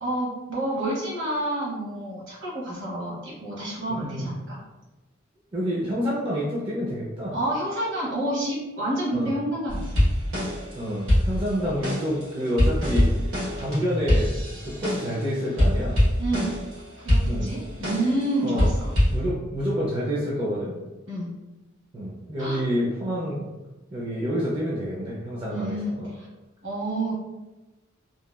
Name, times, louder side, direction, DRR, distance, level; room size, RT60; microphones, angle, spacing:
voice 1, 0.0-4.6 7.3-9.9 16.2-16.6 17.0-18.9 21.1-21.3 22.4-22.6 25.5-26.3 26.6-27.2, right 1 dB, 65° right, -5 dB, 1.1 m, -29 dB
voice 2, 3.9-4.3 5.5-7.3 9.1-9.3 10.8-13.3 13.6-14.3 14.6-16.0 17.3-17.5 18.4-18.7 19.1-20.8 21.9-23.5 23.9-26.1, equal, 25° right, -5 dB, 0.4 m, -28 dB
sound 1, 9.7-10.7 11.1-15.2 15.6-16.7 17.1-18.2 18.6-19.2, equal, 85° right, 1.2 m, -23 dB
2.9 x 2.2 x 2.2 m, 1.1 s
head